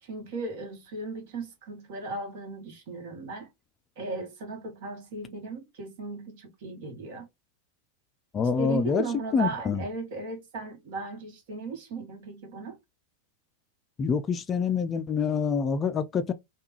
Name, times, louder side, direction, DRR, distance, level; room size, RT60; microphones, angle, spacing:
voice 1, 0.0-3.5 4.0-7.3 8.4-12.8, right 3 dB, 50° right, 1.2 m, -36 dB
voice 2, 8.3-9.0 9.3-9.8 14.0-16.3, left 6 dB, 25° left, 0.4 m, -26 dB
3.5 x 2.3 x 3.0 m
figure-of-eight pair, 90°, 0 cm